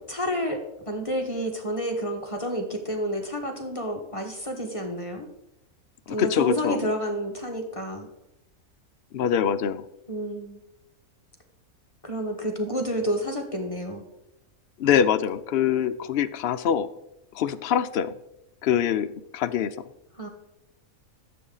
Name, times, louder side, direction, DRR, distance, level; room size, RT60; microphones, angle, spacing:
voice 1, 0.0-5.3 6.1-8.1 10.1-10.6 12.0-14.0 20.2-20.3, equal, 25° left, 2 dB, 1.4 m, -30 dB
voice 2, 6.1-6.9 9.1-9.8 14.8-16.9 17.3-18.1 18.6-19.8, left 8 dB, 55° left, 10 dB, 0.7 m, -24 dB
14.0 x 7.6 x 3.9 m, 0.85 s
omnidirectional pair, 1.5 m